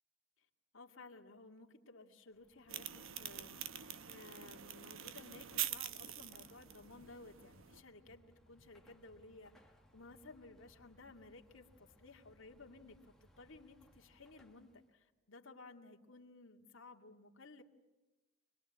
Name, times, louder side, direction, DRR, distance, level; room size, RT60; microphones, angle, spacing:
voice 1, 0.7-17.6, left 3 dB, 70° left, 3 dB, 2.2 m, -57 dB
Car passing by / Traffic noise roadway noise / Engine, 2.3-14.9, equal, ahead, 1.6 m, -68 dB
sound 1, 2.7-7.8, right 11 dB, 75° right, 1.1 m, -45 dB
25.5 x 20.5 x 8.7 m, 1.1 s
head